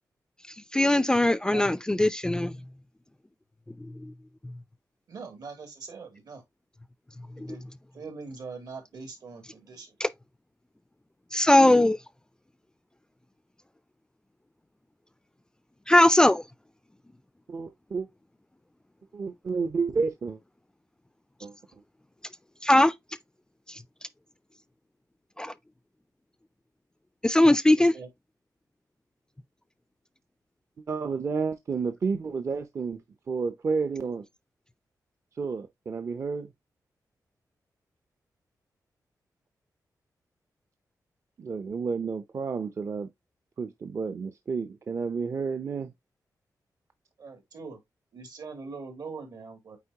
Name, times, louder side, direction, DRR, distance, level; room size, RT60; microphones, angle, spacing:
voice 1, 0.7-2.5 10.0-10.1 11.3-12.0 15.9-16.4 22.6-22.9 25.4-25.5 27.2-27.9, left 1 dB, 10° left, 0.3 m, -20 dB
voice 2, 5.1-6.4 7.5-7.6 7.9-9.9 27.8-28.1 47.2-47.8 48.1-49.8, right 4 dB, 70° right, 2.6 m, -42 dB
voice 3, 17.5-18.1 19.1-20.4 21.4-21.5 30.9-34.2 35.4-36.5 41.4-43.1 43.6-45.9, right 5 dB, 45° right, 0.6 m, -31 dB
8.3 x 4.4 x 2.9 m
wide cardioid pair, 145°, 7 cm